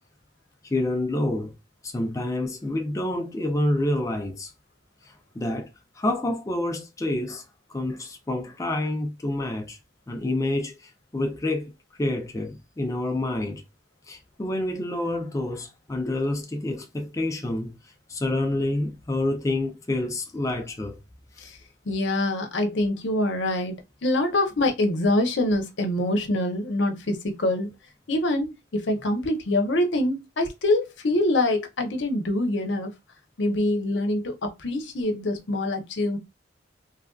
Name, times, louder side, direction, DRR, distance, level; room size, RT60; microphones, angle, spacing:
voice 1, 0.6-1.5 1.8-4.5 5.1-5.7 6.0-7.4 7.7-9.8 10.1-11.7 12.0-13.6 14.1-17.7 18.1-21.0, left 1 dB, 15° left, 0.4 m, -28 dB
voice 2, 21.9-23.7 24.0-27.7 28.1-32.9 33.4-36.2, left 1 dB, 70° left, 0.7 m, -25 dB
3.2 x 2.5 x 2.3 m
head